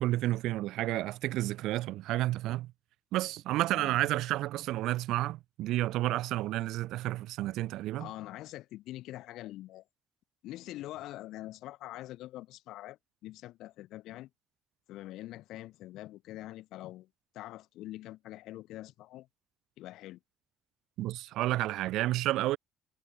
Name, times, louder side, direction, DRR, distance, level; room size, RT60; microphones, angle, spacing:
voice 1, 0.0-2.7 3.1-8.1 21.0-22.6, right 16 dB, 70° right, 2.1 m, -31 dB
voice 2, 8.0-9.8 10.4-14.3 14.9-17.1 17.3-19.3 19.8-20.2, left 15 dB, 65° left, 5.4 m, -44 dB
cardioid pair, 170°, 0 cm